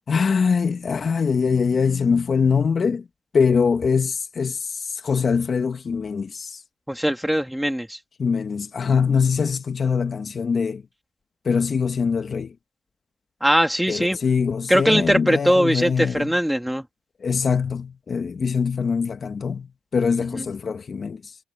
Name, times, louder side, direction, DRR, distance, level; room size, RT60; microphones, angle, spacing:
voice 1, 0.1-3.1 3.3-6.6 8.2-10.8 11.5-12.5 13.9-16.3 17.2-19.7 19.9-21.4, left 5 dB, 40° left, 1.6 m, -23 dB
voice 2, 6.9-8.0 13.4-14.2 14.7-16.8, equal, ahead, 2.5 m, -20 dB
cardioid pair, 90°, 0 cm